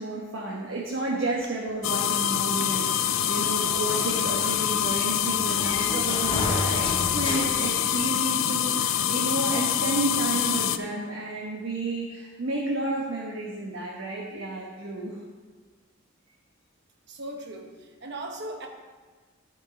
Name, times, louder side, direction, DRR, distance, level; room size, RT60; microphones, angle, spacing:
voice 1, 0.0-15.2, right 2 dB, 80° right, -3 dB, 1.2 m, -31 dB
sound 1, 1.8-10.8, left 10 dB, 80° left, 0.4 m, -25 dB
sound 2, 3.2-8.4, left 1 dB, 25° left, 0.7 m, -34 dB
voice 2, 17.1-18.7, right 1 dB, 60° right, 3 dB, 1.1 m, -38 dB
12.5 x 5.2 x 4.1 m, 1.4 s
head